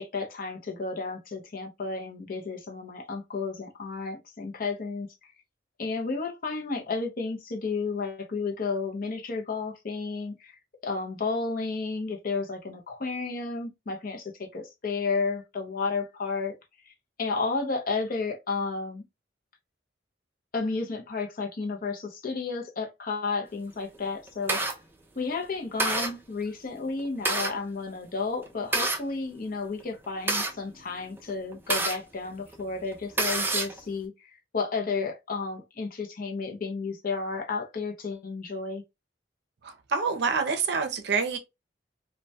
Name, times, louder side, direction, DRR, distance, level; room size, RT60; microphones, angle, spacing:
voice 1, 0.0-5.3 5.8-10.6 10.8-16.5 16.8-16.9 17.2-19.0 20.5-24.6 25.2-38.8, left 4 dB, 50° left, 0.6 m, -32 dB
sound 1, 23.8-24.7 25.3-25.4 25.8-26.1 26.9-27.5 28.4-29.0 29.8-32.0 32.5-32.6 32.9-33.8, right 2 dB, 10° right, 0.3 m, -27 dB
voice 2, 39.6-41.4, right 5 dB, 60° right, 0.5 m, -27 dB
2.1 x 2.1 x 2.6 m
head